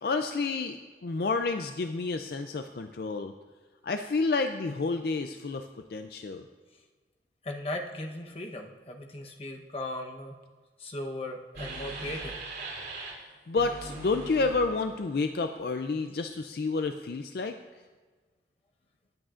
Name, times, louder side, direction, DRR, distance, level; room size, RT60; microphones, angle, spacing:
voice 1, 0.0-3.3 3.8-6.4 13.5-17.6, left 3 dB, 60° left, 7 dB, 0.4 m, -30 dB
voice 2, 7.4-10.4 10.8-12.3, left 1 dB, 35° left, 2 dB, 0.9 m, -37 dB
sound 1, 11.5-13.1 13.6-15.2, right 3 dB, 70° right, 3.4 m, -40 dB
19.5 x 8.6 x 2.5 m, 1.4 s
head